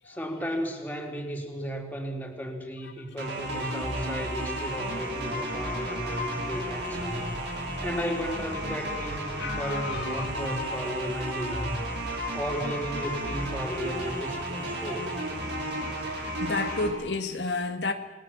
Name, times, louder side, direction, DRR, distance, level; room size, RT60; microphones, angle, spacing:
voice 1, 0.0-7.3 7.8-11.8 12.3-15.1, equal, 10° left, 3.8 m, -34 dB
sound 1, 3.2-16.9, right 1 dB, 80° right, 6.7 m, -33 dB
voice 2, 9.4-10.3 16.0-17.9, left 3 dB, 85° left, 2.1 m, -32 dB
28.5 x 21.0 x 7.4 m
head